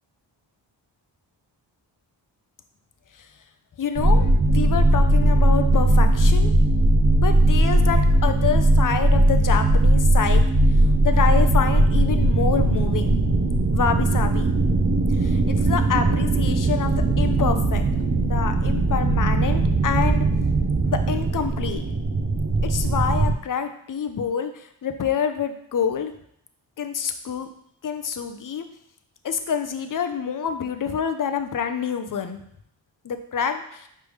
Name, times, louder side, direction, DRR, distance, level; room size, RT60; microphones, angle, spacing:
voice 1, 3.8-6.5 7.2-10.4 11.0-13.2 13.7-14.5 15.2-17.8 18.2-20.2 20.8-21.8 22.6-24.5 24.8-26.1 26.8-27.5 27.8-28.6 29.2-32.4 33.0-33.9, left 7 dB, 45° left, 8 dB, 0.6 m, -27 dB
sound 1, 4.0-23.3, right 2 dB, 30° right, 0.6 m, -19 dB
4.8 x 3.4 x 3.2 m, 0.72 s
cardioid pair, 50°, 48 cm